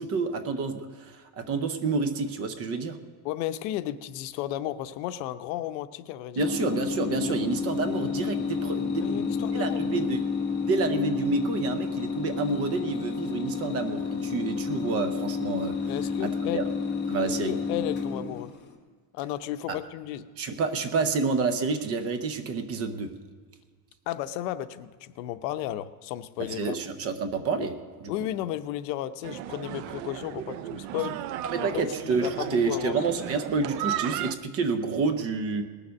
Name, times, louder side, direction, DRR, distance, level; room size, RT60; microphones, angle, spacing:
voice 1, 0.0-3.0 6.4-10.2 10.7-15.8 16.2-16.6 17.1-17.5 19.7-19.8 20.4-23.1 26.6-28.1 31.5-35.6, right 4 dB, 30° right, 8 dB, 0.7 m, -29 dB
voice 2, 3.2-6.5 7.2-7.4 9.0-9.8 15.9-16.7 17.2-18.5 19.1-20.3 24.1-26.8 28.1-31.2 31.6-31.8 32.1-33.0, left 13 dB, 80° left, 12 dB, 0.8 m, -33 dB
sound 1, 6.4-18.7, left 5 dB, 20° left, 1.1 m, -30 dB
sound 2, 29.2-34.3, right 12 dB, 70° right, 0.7 m, -35 dB
19.0 x 7.1 x 6.3 m, 1.5 s
cardioid pair, 170°, 49 cm